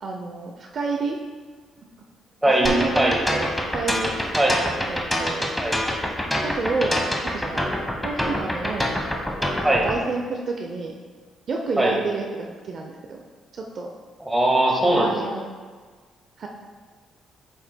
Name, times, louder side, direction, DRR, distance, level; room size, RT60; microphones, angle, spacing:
voice 1, 0.0-1.2 1.8-1.9 2.4-4.1 4.9-5.6 6.4-7.7 8.0-8.9 9.7-10.9 11.5-13.2 13.5-13.9 14.8-15.4 16.4-16.5, right 3 dB, 55° right, 1 dB, 0.6 m, -29 dB
voice 2, 2.4-3.1 4.4-4.6 5.6-5.7 9.6-9.8 11.8-11.9 14.2-15.1, right 1 dB, 10° right, -2 dB, 1.5 m, -20 dB
sound 1, 2.7-10.0, equal, 5° left, 1.0 m, -25 dB
8.0 x 6.3 x 2.2 m, 1.5 s
cardioid pair, 90°, 0 cm